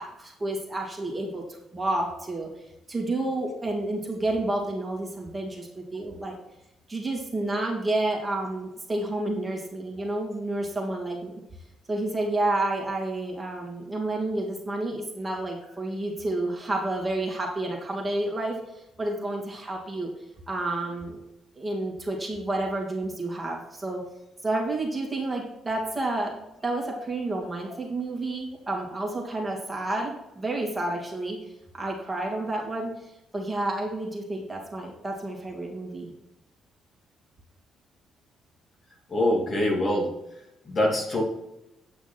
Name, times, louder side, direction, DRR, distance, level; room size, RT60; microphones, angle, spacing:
voice 1, 0.0-2.5 2.9-6.4 6.9-11.4 11.9-20.1 20.5-21.2 21.6-24.0 24.4-36.1, right 2 dB, 20° right, -1 dB, 2.6 m, -30 dB
voice 2, 39.1-40.1 40.7-41.2, left 1 dB, 40° left, -1 dB, 2.7 m, -24 dB
9.8 x 5.9 x 4.3 m, 0.90 s
cardioid pair, 90°, 0 cm